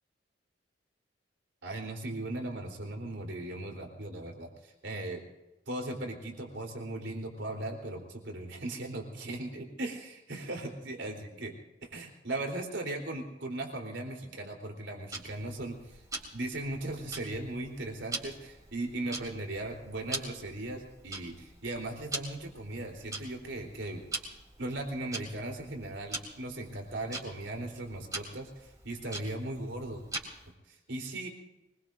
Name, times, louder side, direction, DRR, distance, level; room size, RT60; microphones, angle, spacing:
voice 1, 1.6-5.2 5.7-11.6 11.8-16.0 16.3-24.0 24.6-30.0 30.7-31.3, right 2 dB, 90° right, 2 dB, 3.8 m, -38 dB
Tick-tock, 15.1-30.5, right 2 dB, 20° right, 3.4 m, -43 dB
25.0 x 21.5 x 2.6 m, 1.0 s
head